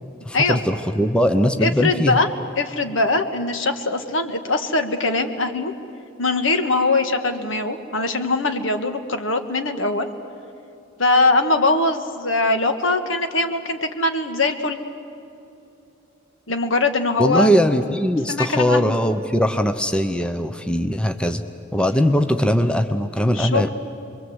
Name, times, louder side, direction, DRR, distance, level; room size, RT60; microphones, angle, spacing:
voice 1, 0.2-2.2 17.2-21.4 21.7-23.7, equal, 5° left, 8 dB, 0.8 m, -20 dB
voice 2, 1.6-2.3 2.6-5.7 6.2-10.1 11.0-14.8 16.5-17.6 18.3-18.9 23.3-23.7, left 3 dB, 80° left, 7 dB, 1.7 m, -21 dB
27.0 x 22.5 x 8.1 m, 2.8 s
head